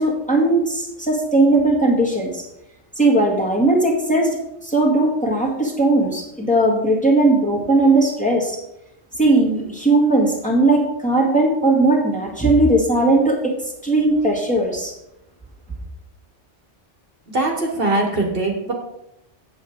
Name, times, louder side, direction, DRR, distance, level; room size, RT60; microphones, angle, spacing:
voice 1, 0.0-2.4 3.0-4.4 4.6-8.6 9.2-13.5 13.8-14.9, right 2 dB, 5° left, -2 dB, 1.9 m, -18 dB
voice 2, 17.3-18.7, right 2 dB, 50° right, 1 dB, 1.5 m, -21 dB
8.1 x 7.7 x 5.0 m, 0.84 s
omnidirectional pair, 1.2 m